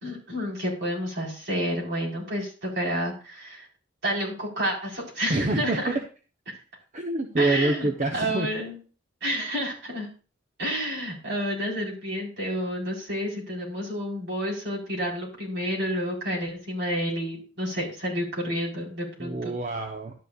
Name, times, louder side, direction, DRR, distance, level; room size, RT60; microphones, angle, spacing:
voice 1, 0.0-3.7 4.0-6.0 7.4-8.8 9.2-10.1 10.6-19.5, equal, 60° right, -3 dB, 4.4 m, -30 dB
voice 2, 5.3-6.0 6.9-8.5 19.2-20.1, right 2 dB, 40° right, 3 dB, 0.9 m, -26 dB
12.0 x 9.7 x 2.4 m, 0.35 s
head